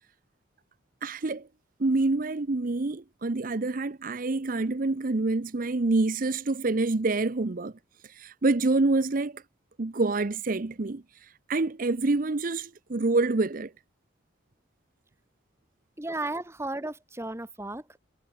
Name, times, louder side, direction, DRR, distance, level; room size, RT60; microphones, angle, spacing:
voice 1, 1.0-1.5 1.8-7.7 8.0-9.4 9.8-13.7, right 3 dB, 45° right, 0.7 m, -27 dB
voice 2, 16.0-18.0, right 2 dB, 15° right, 1.2 m, -34 dB
head